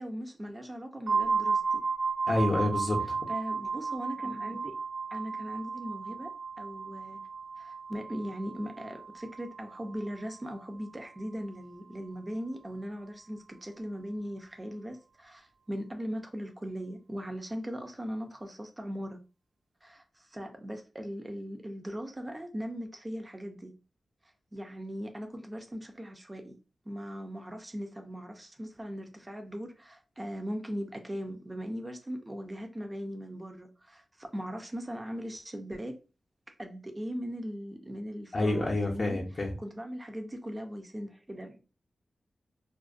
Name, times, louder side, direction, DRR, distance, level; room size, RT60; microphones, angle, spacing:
voice 1, 0.0-1.8 3.3-4.8 5.1-6.3 6.6-7.2 7.6-19.2 19.8-23.7 24.5-26.6 26.9-36.0 36.5-39.2 39.6-41.6, equal, 25° right, 0.5 m, -39 dB
sound 1, 1.1-10.7, right 4 dB, 80° right, 0.4 m, -34 dB
voice 2, 2.3-3.2 38.3-39.5, left 2 dB, 50° left, 0.5 m, -28 dB
2.4 x 2.1 x 2.5 m
cardioid pair, 60°, 0 cm